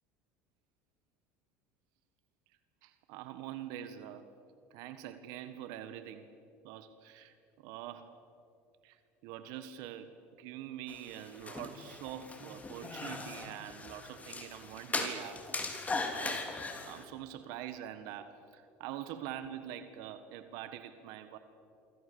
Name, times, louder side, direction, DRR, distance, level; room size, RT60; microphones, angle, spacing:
voice 1, 2.8-4.3 4.7-6.3 6.6-8.1 8.8-15.8 16.1-21.4, right 11 dB, 70° right, 10 dB, 1.5 m, -45 dB
sound 1, 10.9-17.0, left 3 dB, 20° left, 3.7 m, -39 dB
27.0 x 25.0 x 7.0 m, 2.6 s
hypercardioid pair, 90°, 7 cm